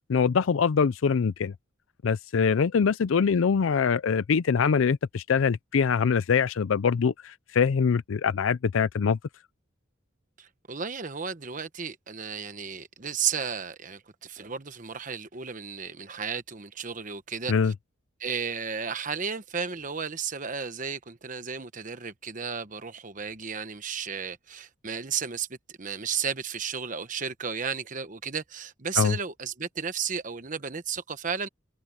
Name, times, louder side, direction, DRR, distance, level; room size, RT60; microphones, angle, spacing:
voice 1, 0.1-1.5 2.0-9.2 17.5-17.7 29.0-29.2, left 6 dB, 85° left, 0.4 m, -23 dB
voice 2, 10.4-17.7 18.2-31.5, right 6 dB, 40° right, 1.1 m, -33 dB
head